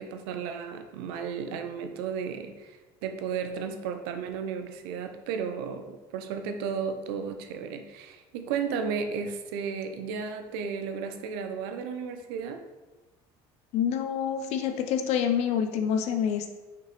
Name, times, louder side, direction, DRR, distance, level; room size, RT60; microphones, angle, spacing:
voice 1, 0.0-12.6, right 6 dB, 90° right, 7 dB, 0.5 m, -34 dB
voice 2, 13.7-16.6, left 8 dB, 65° left, 7 dB, 0.6 m, -27 dB
5.8 x 2.9 x 3.0 m, 1.2 s
supercardioid pair, 100°, 12 cm